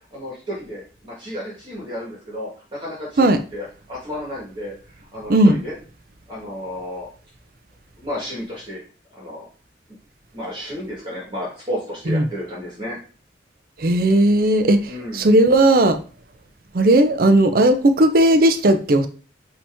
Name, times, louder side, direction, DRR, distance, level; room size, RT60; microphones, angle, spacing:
voice 1, 0.1-4.7 5.1-5.8 6.3-7.1 8.0-8.8 9.1-9.5 10.3-13.0 14.9-15.2, equal, 25° right, 1.6 m, -32 dB
voice 2, 13.8-16.0 16.7-19.1, right 1 dB, 50° right, 0.5 m, -16 dB
5.4 x 2.9 x 3.4 m
head